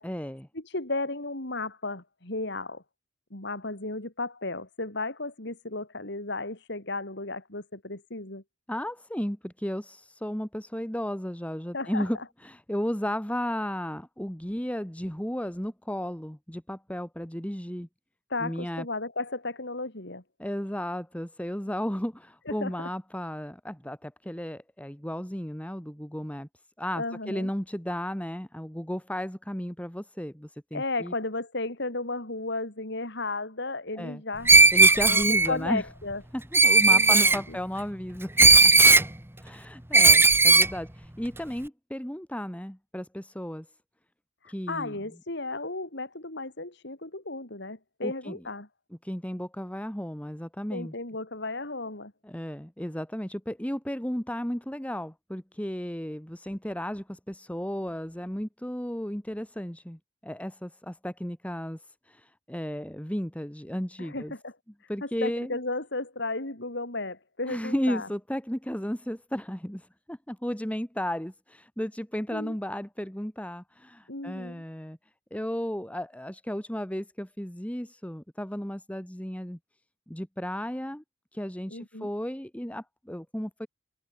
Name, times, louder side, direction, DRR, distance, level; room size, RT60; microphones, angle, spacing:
voice 1, 0.0-0.5 8.7-17.9 18.4-18.9 20.4-26.5 26.8-31.1 34.0-34.2 34.7-35.8 36.3-38.7 39.4-43.7 44.5-45.0 48.0-48.4 49.0-50.9 52.2-64.3 64.9-65.6 67.5-75.0 75.3-79.6 80.1-81.0 81.3-83.7, equal, 5° left, 1.8 m, -34 dB
voice 2, 0.5-2.8 3.3-8.4 11.7-12.2 18.3-20.2 22.5-22.9 27.0-27.5 30.7-34.6 35.0-36.2 36.8-37.6 44.4-48.7 50.7-52.1 64.0-64.5 65.0-68.1 72.3-72.6 74.1-74.6 81.7-82.1, left 2 dB, 60° left, 4.0 m, -34 dB
Screech, 34.5-35.5 36.5-37.4 38.4-39.1 39.9-40.7, right 3 dB, 10° right, 1.4 m, -16 dB
head